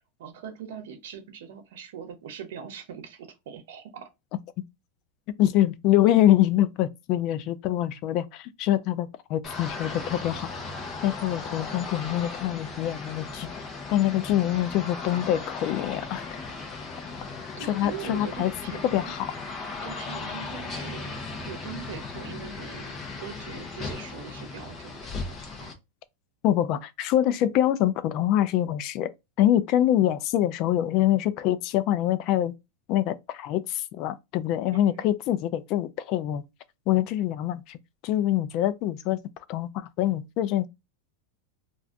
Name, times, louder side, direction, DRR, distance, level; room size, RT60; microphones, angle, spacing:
voice 1, 0.2-4.1 17.3-19.1 19.8-21.1 21.4-25.1 25.4-25.7 34.7-35.0, right 8 dB, 75° right, 0.8 m, -41 dB
voice 2, 5.4-10.5 11.0-13.5 13.9-16.2 17.7-18.5 18.9-19.3 26.4-29.1 29.4-32.5 32.9-36.4 36.9-37.8 38.0-39.2 39.5-40.7, left 12 dB, 45° left, 0.3 m, -25 dB
sound 1, 9.4-25.7, left 4 dB, 25° left, 0.7 m, -37 dB
2.5 x 2.3 x 3.5 m
supercardioid pair, 140°, 0 cm